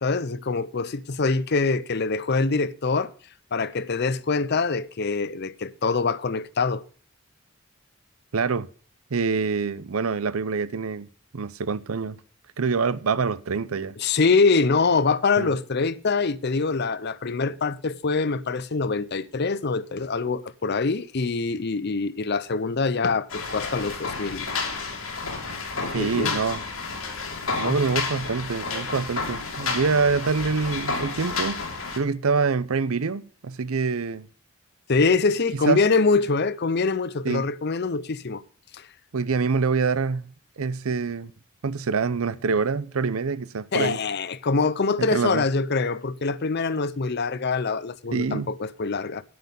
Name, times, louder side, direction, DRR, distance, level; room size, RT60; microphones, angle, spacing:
voice 1, 0.0-3.1 3.5-6.8 14.0-24.5 25.8-26.4 27.6-27.8 34.9-38.4 38.7-38.9 43.7-49.2, left 4 dB, 50° left, 0.7 m, -24 dB
voice 2, 8.3-8.7 9.1-11.1 11.3-12.2 12.6-14.0 15.4-15.5 25.9-26.6 27.6-31.6 32.0-34.3 35.5-35.8 37.2-37.5 39.1-41.3 41.6-44.0 45.0-45.5 48.1-48.5, right 4 dB, 90° right, 0.6 m, -25 dB
sound 1, 23.3-32.0, left 4 dB, 85° left, 2.9 m, -31 dB
9.6 x 9.5 x 5.4 m
head